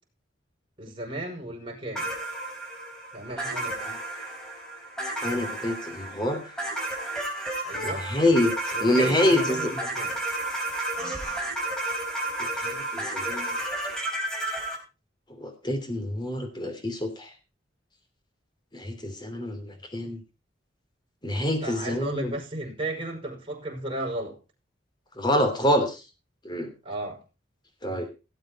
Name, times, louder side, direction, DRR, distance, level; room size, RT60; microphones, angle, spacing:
voice 1, 0.8-2.1 3.1-3.8 7.6-8.1 8.7-10.2 21.4-24.4 26.8-27.2, right 1 dB, 25° right, -1 dB, 5.3 m, -34 dB
sound 1, 1.9-14.8, right 1 dB, 5° left, 4.5 m, -32 dB
voice 2, 5.2-6.4 7.8-8.5 8.8-9.7 12.4-13.5 15.4-17.3 18.7-20.2 21.2-22.4 25.2-26.0 26.4-26.7 27.8-28.1, left 1 dB, 25° left, 6 dB, 3.0 m, -26 dB
17.5 x 8.0 x 4.3 m, 0.30 s
head